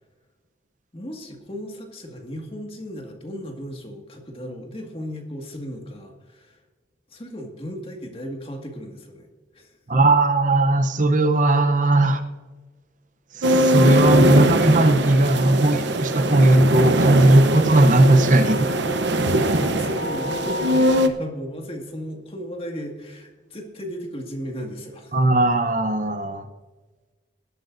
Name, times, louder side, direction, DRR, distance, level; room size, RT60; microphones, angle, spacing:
voice 1, 0.9-6.6 7.1-9.3 9.5-9.8 18.3-25.2, equal, 30° left, 2 dB, 2.0 m, -35 dB
voice 2, 9.9-12.2 13.3-18.6 25.1-26.4, right 2 dB, 40° right, 8 dB, 0.8 m, -17 dB
sound 1, 13.4-21.1, right 1 dB, 75° right, 0.9 m, -21 dB
19.5 x 12.0 x 2.7 m, 1.3 s
head